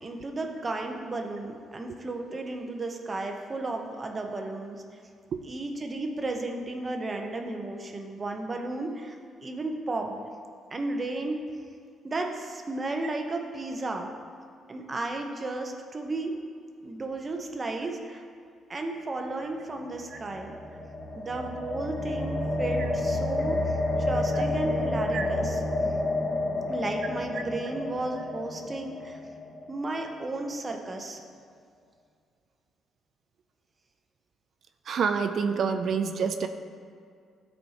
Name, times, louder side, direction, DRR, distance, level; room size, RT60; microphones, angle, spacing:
voice 1, 0.0-4.8 5.4-9.2 9.4-10.2 10.7-11.4 12.0-14.1 14.7-16.3 16.8-18.2 18.7-20.6 21.2-25.6 26.7-29.2 29.7-31.2, right 2 dB, 30° right, 3 dB, 0.8 m, -33 dB
sound 1, 19.9-30.0, left 2 dB, 35° left, 1.8 m, -30 dB
voice 2, 34.9-36.5, right 6 dB, 60° right, 7 dB, 0.4 m, -27 dB
12.5 x 4.3 x 2.9 m, 2.2 s
cardioid pair, 90°, 0 cm